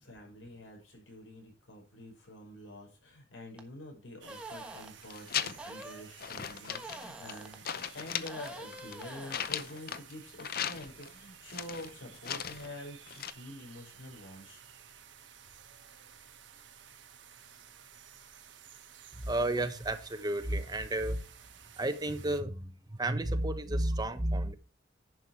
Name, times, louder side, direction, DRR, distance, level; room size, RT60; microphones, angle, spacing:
voice 1, 0.0-14.6, left 1 dB, 90° left, 5.9 m, -47 dB
sound 1, 3.6-3.7 4.3-4.9 5.6-6.1 6.7-7.6 8.3-9.5, right 1 dB, 5° right, 1.2 m, -46 dB
sound 2, 4.2-22.4, right 8 dB, 70° right, 1.3 m, -54 dB
sound 3, 5.0-5.8 6.2-7.4 7.7-10.1 10.4-11.1 11.5-12.7 13.1-13.3, left 9 dB, 55° left, 0.7 m, -37 dB
voice 2, 19.2-21.2 21.8-22.7 23.0-24.5, right 1 dB, 20° right, 1.1 m, -31 dB
10.5 x 6.3 x 4.7 m
head